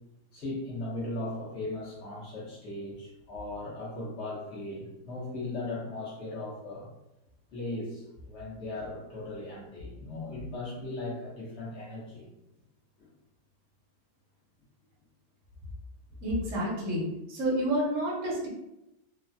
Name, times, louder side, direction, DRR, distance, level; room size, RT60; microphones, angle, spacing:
voice 1, 0.3-6.9 7.5-12.3 13.0-13.1, left 2 dB, 50° left, -6 dB, 0.9 m, -38 dB
voice 2, 16.2-17.0 17.3-18.5, right 1 dB, 55° right, -4 dB, 0.9 m, -29 dB
3.2 x 2.1 x 2.5 m, 0.89 s
omnidirectional pair, 2.0 m